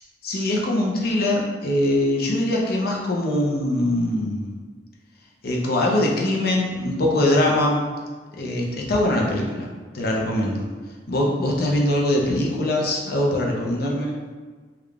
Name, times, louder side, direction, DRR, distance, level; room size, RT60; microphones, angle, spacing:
voice 1, 0.2-4.6 5.4-7.8 8.3-9.7 9.9-10.7 11.1-14.2, left 1 dB, 60° left, -1 dB, 0.6 m, -22 dB
3.5 x 2.3 x 3.4 m, 1.5 s
head